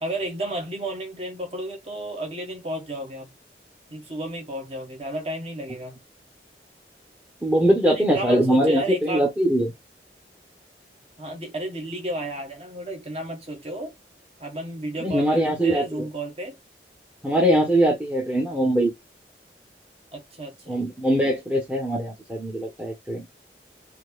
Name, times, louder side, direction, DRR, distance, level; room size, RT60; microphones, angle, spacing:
voice 1, 0.0-3.3 3.9-6.0 7.9-9.3 11.2-13.9 14.4-16.6 20.1-20.8, right 1 dB, 35° right, 1.4 m, -32 dB
voice 2, 7.4-9.7 15.0-16.1 17.2-18.9 20.7-23.3, right 1 dB, 10° right, 1.0 m, -22 dB
4.5 x 2.9 x 2.3 m
head